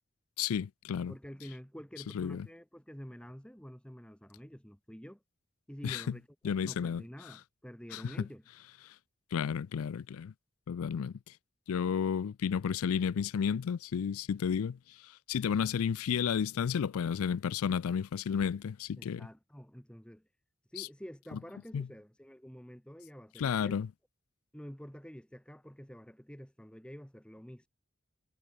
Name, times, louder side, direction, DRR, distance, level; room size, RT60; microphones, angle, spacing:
voice 1, 0.4-1.1 2.1-2.5 5.8-6.0 6.4-7.0 7.9-8.1 9.3-10.3 10.7-11.2 11.7-14.8 15.3-19.3 20.8-20.9 21.7-21.9 23.4-23.9, left 7 dB, 90° left, 0.4 m, -32 dB
voice 2, 1.1-5.2 5.7-6.3 6.6-8.4 19.0-20.3 20.7-23.8 24.5-27.7, equal, 5° left, 1.3 m, -48 dB
head